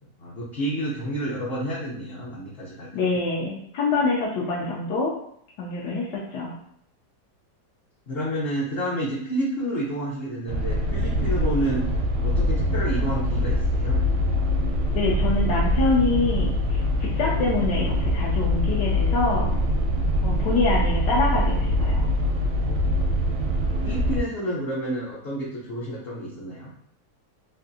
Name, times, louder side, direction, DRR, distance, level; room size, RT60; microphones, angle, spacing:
voice 1, 0.2-3.2 8.1-11.8 12.2-14.0 23.8-26.7, right 1 dB, 50° left, -7 dB, 0.7 m, -29 dB
voice 2, 2.9-5.1 5.6-6.6 14.9-19.6 20.2-22.1, left 3 dB, 85° left, -4 dB, 1.2 m, -25 dB
sound 1, 10.5-24.2, equal, 70° right, 0.8 m, -23 dB
3.2 x 2.6 x 2.6 m, 0.67 s
omnidirectional pair, 1.8 m